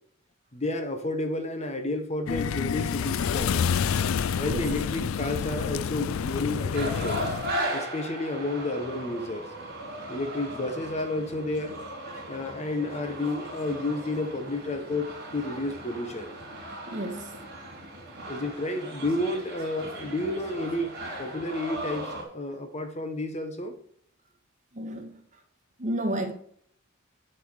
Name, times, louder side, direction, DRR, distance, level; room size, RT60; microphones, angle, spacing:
voice 1, 0.5-3.7 4.3-7.2 7.7-9.4 10.1-11.8 12.3-16.4 18.3-20.9 21.2-23.7, left 2 dB, 30° left, 7 dB, 1.1 m, -31 dB
sound 1, 2.3-7.5, left 7 dB, 80° left, 0.4 m, -28 dB
sound 2, 6.7-22.2, right 1 dB, 50° right, 3.4 m, -37 dB
voice 2, 16.9-17.4 24.7-25.2 25.8-26.3, right 1 dB, 35° right, 4 dB, 1.5 m, -31 dB
10.5 x 4.5 x 6.3 m, 0.64 s
head